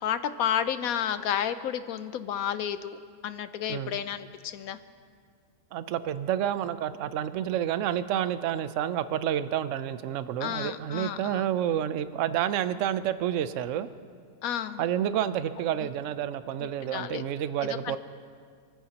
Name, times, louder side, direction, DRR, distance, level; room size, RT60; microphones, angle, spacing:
voice 1, 0.0-3.0 3.2-4.8 10.4-11.5 14.4-14.8 16.9-17.2 17.6-18.0, left 9 dB, 70° left, 11 dB, 1.1 m, -31 dB
voice 2, 5.7-13.9 14.8-18.0, right 10 dB, 65° right, 12 dB, 0.9 m, -29 dB
28.5 x 15.0 x 2.9 m, 2.1 s
omnidirectional pair, 1.6 m